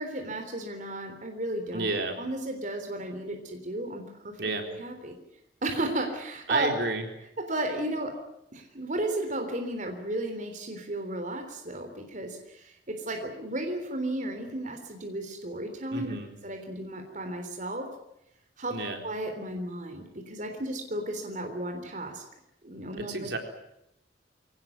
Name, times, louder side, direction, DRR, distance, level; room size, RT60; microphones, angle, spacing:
voice 1, 0.0-1.9 2.2-4.4 4.7-5.2 5.6-6.8 7.4-8.1 8.5-17.9 18.6-18.8 19.0-22.2 22.6-23.3, right 1 dB, 45° right, 4 dB, 3.6 m, -34 dB
voice 2, 1.7-2.2 4.4-4.7 6.5-7.0 15.9-16.3 18.7-19.0 23.0-23.4, right 2 dB, 65° right, 4 dB, 4.1 m, -31 dB
23.5 x 18.5 x 9.5 m, 0.83 s
head